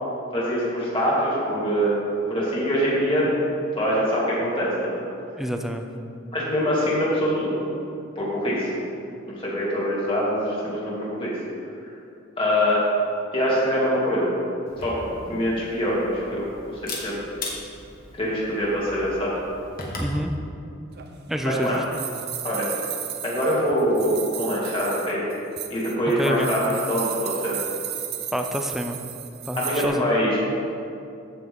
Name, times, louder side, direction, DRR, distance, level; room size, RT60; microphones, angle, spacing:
voice 1, 0.3-1.9 2.3-3.3 3.8-5.0 6.3-7.6 8.2-8.7 9.3-11.3 12.4-12.8 13.3-14.3 14.8-15.0 15.3-17.2 18.2-19.3 21.4-21.7 22.4-22.7 23.2-25.2 25.7-26.6 26.9-27.6 29.6-30.4, equal, 25° left, -7 dB, 2.5 m, -24 dB
voice 2, 5.4-5.9 20.0-20.3 21.3-21.8 26.2-26.5 28.3-29.0 29.5-30.1, equal, ahead, 4 dB, 0.5 m, -27 dB
Camera, 14.7-20.2, left 2 dB, 45° left, 1.6 m, -38 dB
sound 1, 21.0-29.9, right 10 dB, 55° right, 0.7 m, -34 dB
15.0 x 6.0 x 3.7 m, 2.6 s
head